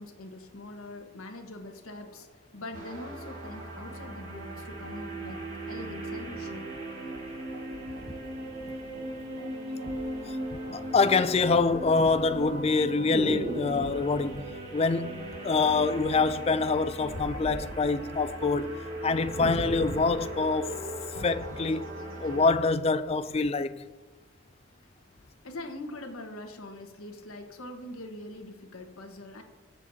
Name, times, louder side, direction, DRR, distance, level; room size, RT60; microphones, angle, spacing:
voice 1, 0.0-5.4 5.7-6.8 25.4-29.4, left 1 dB, 85° left, 1.4 m, -43 dB
sound 1, 2.7-22.5, right 1 dB, 75° right, 2.8 m, -38 dB
sound 2, 7.1-7.2 7.7-9.2 9.9-10.1 10.4-10.9 11.2-14.1 15.2-15.7 16.0-18.3 18.6-18.7 19.0-20.2 20.8-20.9, right 1 dB, 30° right, 1.5 m, -38 dB
voice 2, 10.7-18.7 19.0-20.8 21.2-21.8 22.2-23.8, left 4 dB, 30° left, 0.3 m, -26 dB
21.0 x 7.3 x 2.8 m
head